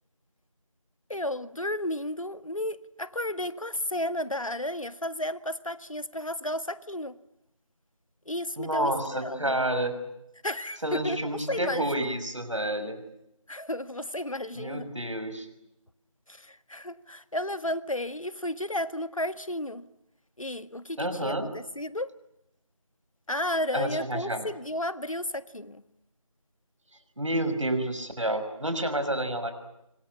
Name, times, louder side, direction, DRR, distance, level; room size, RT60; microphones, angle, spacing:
voice 1, 1.1-7.1 8.3-9.6 10.4-11.2 11.5-12.1 13.5-14.9 16.3-19.8 20.4-22.1 23.3-25.8, left 1 dB, 70° left, 13 dB, 1.6 m, -33 dB
voice 2, 8.6-10.0 10.8-13.0 14.5-15.5 21.0-21.5 23.7-24.5 27.2-29.5, right 1 dB, 65° right, 9 dB, 6.3 m, -29 dB
26.5 x 25.0 x 8.7 m, 0.85 s
figure-of-eight pair, 180°, 17 cm